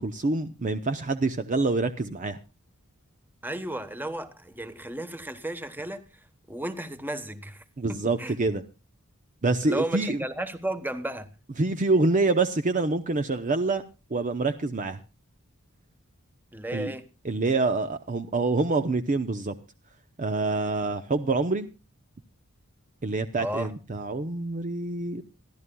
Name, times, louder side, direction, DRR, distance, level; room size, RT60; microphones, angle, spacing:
voice 1, 0.0-2.4 7.8-8.6 9.4-10.2 11.6-13.8 14.1-15.0 16.7-16.9 17.2-19.5 20.2-21.7 23.0-25.2, right 3 dB, 40° right, 0.6 m, -26 dB
voice 2, 3.4-6.0 6.5-7.6 7.9-8.4 9.6-11.3 16.5-17.0 23.3-23.7, right 1 dB, 10° right, 1.1 m, -33 dB
26.5 x 11.0 x 2.3 m
head